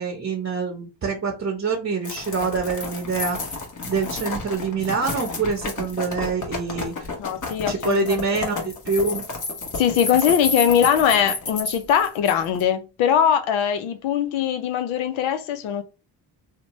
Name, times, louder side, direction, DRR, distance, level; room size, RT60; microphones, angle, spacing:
voice 1, 0.0-3.5 3.9-7.1 7.7-9.3, right 4 dB, 30° right, 0.8 m, -26 dB
sound 1, 2.0-12.6, left 3 dB, 40° left, 1.1 m, -30 dB
voice 2, 7.2-8.0 9.8-15.8, left 9 dB, 75° left, 0.6 m, -21 dB
2.8 x 2.1 x 2.9 m
supercardioid pair, 55°, 48 cm